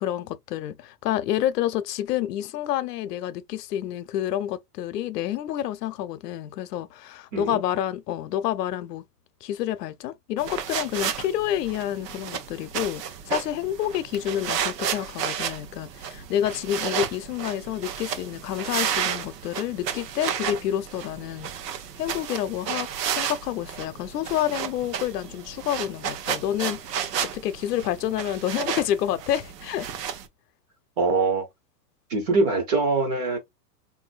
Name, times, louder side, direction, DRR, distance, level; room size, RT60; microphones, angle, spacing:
voice 1, 0.0-9.0 9.4-21.5 22.0-29.9, left 12 dB, 80° left, 0.7 m, -29 dB
sound 1, 10.4-30.3, right 8 dB, 85° right, 0.8 m, -32 dB
voice 2, 31.0-31.5 32.1-33.4, right 3 dB, 25° right, 0.5 m, -23 dB
3.8 x 2.6 x 2.3 m
supercardioid pair, 160°, 48 cm